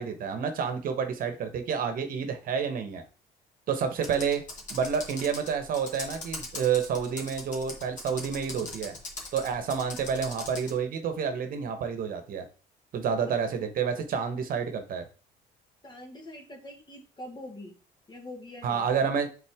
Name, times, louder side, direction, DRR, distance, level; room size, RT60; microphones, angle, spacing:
voice 1, 0.0-3.0 3.7-4.4 4.7-9.0 9.3-12.4 12.9-15.0 18.6-19.3, right 6 dB, 55° right, 7 dB, 1.1 m, -29 dB
Computer keyboard, 4.0-10.8, left 2 dB, 45° left, 2.0 m, -41 dB
voice 2, 15.8-17.8 18.1-18.9, left 1 dB, 25° left, 2 dB, 1.8 m, -44 dB
7.4 x 4.0 x 3.5 m, 0.37 s
cardioid pair, 110°, 17 cm